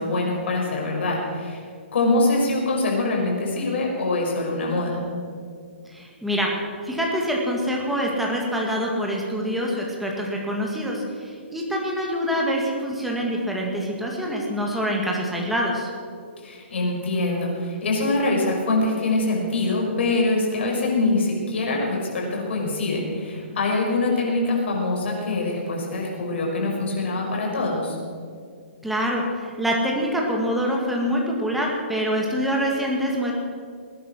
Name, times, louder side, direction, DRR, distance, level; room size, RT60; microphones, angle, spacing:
voice 1, 0.0-1.6 1.9-5.0 16.4-28.0, left 2 dB, 60° left, -1 dB, 5.5 m, -24 dB
voice 2, 5.9-6.6 6.8-15.9 28.8-33.3, equal, ahead, -2 dB, 2.1 m, -25 dB
20.0 x 10.5 x 6.2 m, 2.1 s
hypercardioid pair, 160°, 7 cm